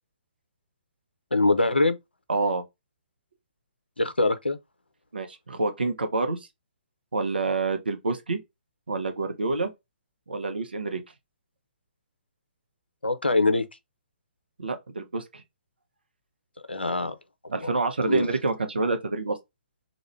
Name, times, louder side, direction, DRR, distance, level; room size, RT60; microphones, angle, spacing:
voice 1, 1.3-2.0 4.0-4.6 13.0-13.6 16.7-17.1 17.6-17.7 18.1-18.3, left 2 dB, 85° left, 0.6 m, -23 dB
voice 2, 2.3-2.6 5.1-6.4 7.1-8.4 8.9-9.7 10.3-11.0 14.6-15.2 17.5-19.4, right 3 dB, 75° right, 0.9 m, -27 dB
3.1 x 2.5 x 3.1 m
figure-of-eight pair, 130°, 6 cm